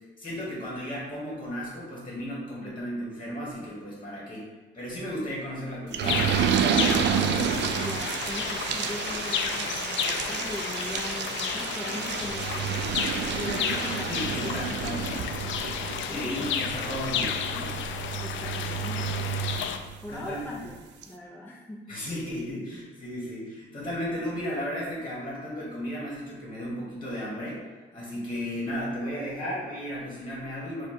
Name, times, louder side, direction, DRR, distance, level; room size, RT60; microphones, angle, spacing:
voice 1, 0.2-4.5 4.7-6.7 14.1-15.0 16.0-17.7 20.1-20.5 21.9-27.6 27.9-30.9, equal, 25° left, -5 dB, 1.5 m, -34 dB
sound 1, 5.9-20.2 20.7-20.8 21.0-21.1, right 7 dB, 65° right, 0.4 m, -30 dB
sound 2, 6.0-19.8, left 7 dB, 75° left, 0.4 m, -32 dB
voice 2, 7.7-17.0 18.2-22.0, left 1 dB, 10° left, -3 dB, 0.4 m, -41 dB
4.4 x 2.3 x 4.4 m, 1.3 s
cardioid pair, 90°, 20 cm